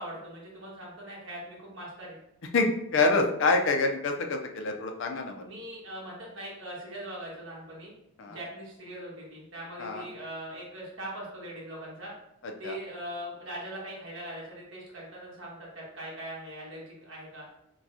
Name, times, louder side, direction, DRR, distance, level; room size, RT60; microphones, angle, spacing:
voice 1, 0.0-2.2 5.3-7.9 8.3-12.1 12.6-17.5, right 1 dB, 60° right, -5 dB, 1.5 m, -41 dB
voice 2, 2.5-5.4 8.2-8.4 9.8-10.0 12.6-12.7, left 3 dB, 60° left, 4 dB, 0.5 m, -26 dB
5.8 x 2.3 x 2.7 m, 0.81 s
head